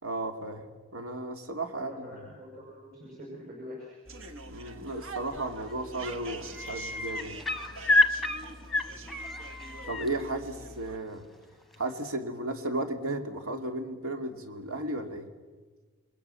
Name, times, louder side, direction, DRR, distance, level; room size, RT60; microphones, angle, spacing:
voice 1, 0.0-0.7 0.9-2.1 4.5-7.4 9.9-11.2 11.8-15.3, right 2 dB, 75° right, 6 dB, 2.8 m, -34 dB
voice 2, 1.7-4.0 8.9-9.2, left 1 dB, 45° right, -2 dB, 6.4 m, -45 dB
sound 1, 4.1-11.0, right 2 dB, 60° right, 1.6 m, -44 dB
Wheeling Gull with Waves, 5.4-5.7 6.0-10.1 11.7-11.8, left 2 dB, ahead, 1.1 m, -28 dB
29.0 x 22.0 x 7.1 m, 1.4 s
head